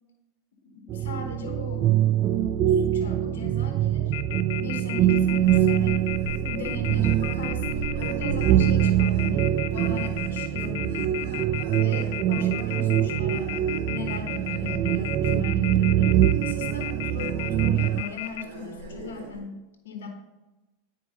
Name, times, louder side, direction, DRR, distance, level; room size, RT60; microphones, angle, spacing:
voice 1, 0.6-1.9 2.7-4.1 4.5-6.0 6.4-11.4 11.8-16.1 16.4-20.1, left 4 dB, 85° left, 4 dB, 1.2 m, -39 dB
sound 1, 0.9-18.0, right 11 dB, 40° right, 0.3 m, -24 dB
Telephone, 4.1-18.4, left 15 dB, 70° left, 0.3 m, -34 dB
sound 2, 5.1-19.4, right 2 dB, 60° right, 2.0 m, -41 dB
9.6 x 4.6 x 3.7 m, 1.0 s
hypercardioid pair, 110°, 0 cm